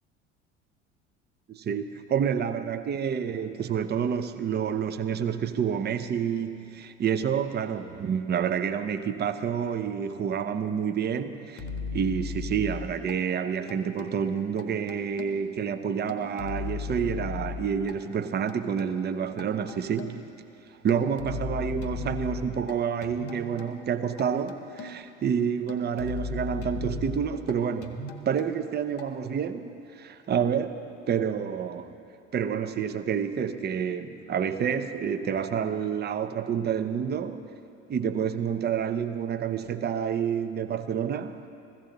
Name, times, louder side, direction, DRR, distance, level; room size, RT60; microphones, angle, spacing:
voice 1, 1.5-11.6 11.9-20.3 20.8-31.9 32.3-37.5 37.9-41.5, right 7 dB, 30° right, 0.7 m, -29 dB
sound 1, 11.6-13.1 13.7-14.2 14.6-15.5 16.1-17.9 18.5-18.9 19.4-20.3 20.9-22.7 23.0-23.7 24.2-25.1 25.7-27.5 27.8-28.5 29.0-29.1, left 4 dB, 40° left, 1.3 m, -36 dB
15.5 x 14.5 x 3.9 m
hypercardioid pair, 65°, 34 cm